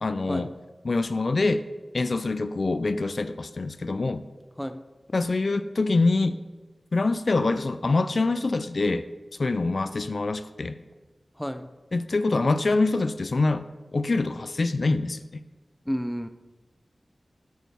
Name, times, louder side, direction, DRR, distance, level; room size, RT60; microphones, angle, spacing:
voice 1, 0.0-0.5 0.9-1.6 1.9-4.2 5.1-6.4 6.9-9.1 9.4-10.8 11.9-13.6 13.9-15.4, left 3 dB, 65° left, 11 dB, 0.3 m, -25 dB
voice 2, 11.4-11.7 15.9-16.3, equal, 5° left, 10 dB, 0.5 m, -31 dB
8.9 x 6.1 x 3.4 m, 1.2 s
cardioid pair, 50°, 0 cm